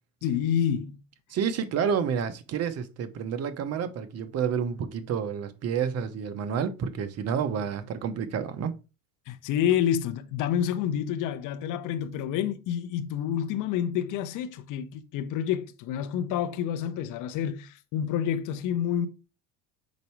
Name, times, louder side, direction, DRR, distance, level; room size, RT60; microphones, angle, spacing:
voice 1, 0.2-1.0 9.3-19.1, left 9 dB, 50° left, 0.8 m, -28 dB
voice 2, 1.3-8.7, right 7 dB, 40° right, 0.9 m, -29 dB
5.2 x 4.1 x 4.6 m
supercardioid pair, 120°, 39 cm